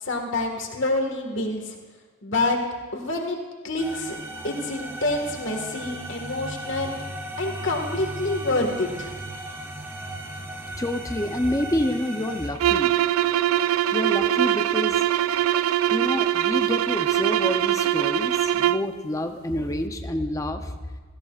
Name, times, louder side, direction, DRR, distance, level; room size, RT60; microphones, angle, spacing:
voice 1, 0.0-1.8 2.2-2.6 2.9-3.4 3.6-4.2 4.4-6.9 7.4-9.1, left 2 dB, 60° left, 2 dB, 1.7 m, -27 dB
sound 1, 3.8-12.5, right 1 dB, 10° right, 0.9 m, -36 dB
voice 2, 10.8-12.9 13.9-15.1 15.9-20.8, left 1 dB, 15° left, 6 dB, 0.6 m, -28 dB
sound 2, 12.5-18.9, right 11 dB, 75° right, 0.3 m, -22 dB
17.5 x 15.0 x 2.5 m, 1.4 s
head